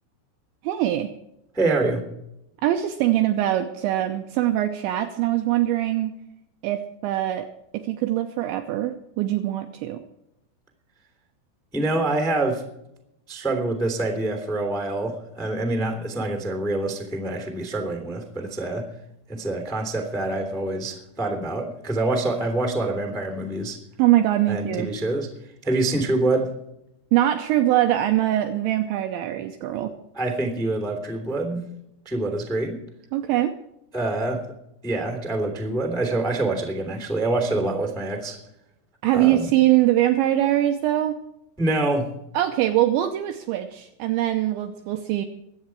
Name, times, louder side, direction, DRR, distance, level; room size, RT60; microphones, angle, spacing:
voice 1, 0.6-1.1 2.6-6.1 6.6-7.5 7.7-10.0 24.0-24.9 27.1-29.9 33.1-33.6 39.0-41.2 42.3-45.3, right 13 dB, 80° right, 6 dB, 2.7 m, -22 dB
voice 2, 1.5-2.0 11.7-12.6 13.3-18.9 19.3-23.8 24.5-25.3 25.6-26.5 30.1-31.7 32.0-32.8 33.9-34.4 34.8-38.4 39.1-39.5 41.6-42.1, right 2 dB, ahead, 4 dB, 1.0 m, -26 dB
23.0 x 8.6 x 4.7 m, 0.82 s
omnidirectional pair, 6.0 m